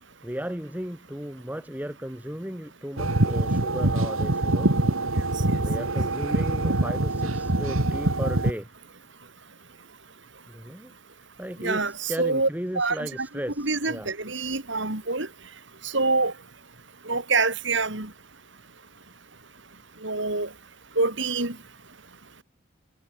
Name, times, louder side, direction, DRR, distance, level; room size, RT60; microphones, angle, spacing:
voice 1, 0.2-4.8 5.6-8.7 10.5-10.9 11.4-14.1, equal, 10° right, 2.6 m, -35 dB
sound 1, 3.0-8.5, right 2 dB, 80° right, 2.0 m, -24 dB
voice 2, 11.6-12.5 12.7-13.1 13.6-15.3 15.9-16.3 17.1-18.1 20.0-20.5 21.0-21.5, right 3 dB, 60° right, 3.3 m, -25 dB
head